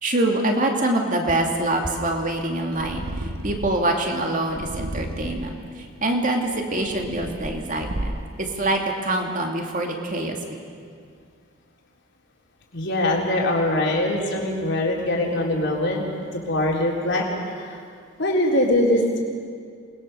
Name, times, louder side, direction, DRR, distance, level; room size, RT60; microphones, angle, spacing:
voice 1, 0.0-8.1 8.4-10.6, right 1 dB, 35° right, 2 dB, 2.6 m, -25 dB
Purr, 2.7-3.8 4.5-5.6 6.3-8.4, right 1 dB, 70° right, 1.3 m, -33 dB
voice 2, 12.7-16.0 16.3-17.8 18.2-19.2, left 1 dB, 50° left, -1 dB, 4.0 m, -22 dB
28.5 x 20.5 x 6.9 m, 2.1 s
head